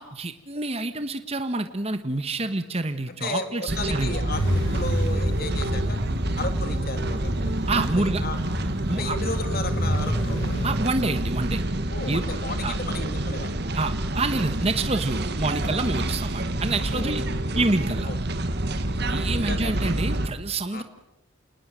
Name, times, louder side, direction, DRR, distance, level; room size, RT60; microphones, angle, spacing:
voice 1, 0.0-4.2 7.7-8.2 8.9-9.2 10.6-11.6 12.1-12.2 12.6-12.8 13.7-17.2 17.5-18.1 19.1-20.8, right 2 dB, 30° right, 9 dB, 1.3 m, -27 dB
voice 2, 3.1-4.4 4.7-6.0 6.3-7.5 8.0-8.4 8.9-10.4 11.9-13.7 16.9-17.2 18.1-18.2 18.9-20.0 20.7-20.8, left 3 dB, 50° left, 8 dB, 2.7 m, -34 dB
sound 1, 3.7-20.3, right 1 dB, 55° right, 1.9 m, -28 dB
sound 2, 4.3-10.7, equal, 70° left, 7.8 m, -29 dB
29.0 x 19.5 x 7.6 m, 0.91 s
head